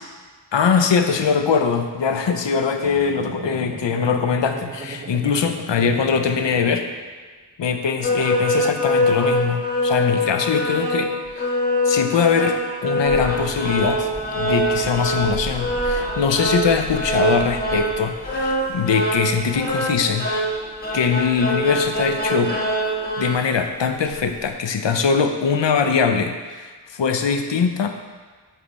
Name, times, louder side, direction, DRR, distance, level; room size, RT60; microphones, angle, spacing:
voice 1, 0.5-6.9 7.6-11.5 11.8-14.1 14.4-20.3 20.9-22.5 23.2-28.0, left 6 dB, 85° left, 6 dB, 0.6 m, -22 dB
sound 1, 2.8-7.1, right 3 dB, 25° right, 0.5 m, -37 dB
sound 2, 8.0-23.3, equal, 20° left, 1.3 m, -23 dB
sound 3, 13.0-24.5, equal, 5° left, 1.4 m, -38 dB
8.5 x 3.3 x 4.1 m, 1.4 s
wide cardioid pair, 45°, 42 cm